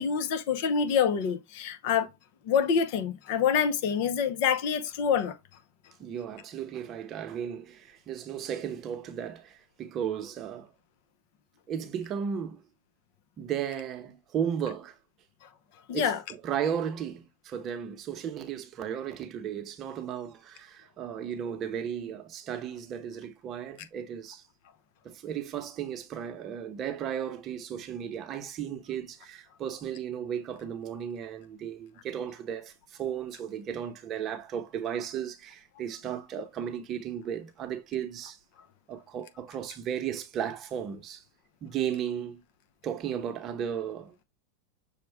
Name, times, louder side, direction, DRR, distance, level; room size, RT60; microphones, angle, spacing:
voice 1, 0.0-2.1 2.5-5.3 15.9-16.2, left 7 dB, 60° left, 0.8 m, -26 dB
voice 2, 6.0-10.7 11.7-12.6 13.4-15.0 15.9-24.4 25.0-38.4 38.9-41.2 41.6-42.4 42.8-44.2, right 8 dB, 35° right, 0.9 m, -35 dB
6.4 x 2.4 x 3.4 m
hypercardioid pair, 120°, 0 cm